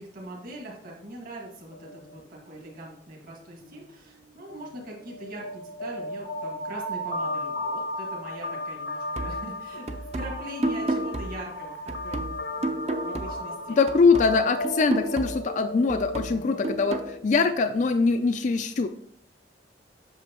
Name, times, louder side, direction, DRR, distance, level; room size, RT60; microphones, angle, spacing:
voice 1, 0.0-12.3 12.6-13.8 16.3-16.8, right 1 dB, 55° right, -2 dB, 1.8 m, -42 dB
sound 1, 1.7-2.9 3.2-3.4 3.6-18.0, left 1 dB, 80° left, 1.1 m, -36 dB
sound 2, 9.2-13.6 13.9-17.2, right 2 dB, 40° right, 0.6 m, -33 dB
voice 2, 13.8-18.9, left 4 dB, 45° left, 9 dB, 0.4 m, -23 dB
8.1 x 6.2 x 3.0 m, 0.66 s
head